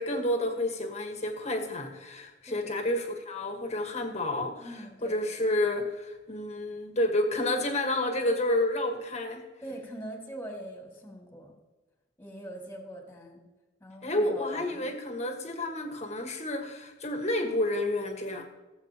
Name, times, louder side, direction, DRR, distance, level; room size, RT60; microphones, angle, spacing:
voice 1, 0.0-9.4 14.0-18.4, left 1 dB, 40° left, 4 dB, 1.5 m, -30 dB
voice 2, 4.6-5.2 9.6-11.6 12.2-13.4 13.8-14.9, right 1 dB, 15° left, 0 dB, 2.3 m, -43 dB
17.5 x 7.8 x 2.9 m, 1.2 s
head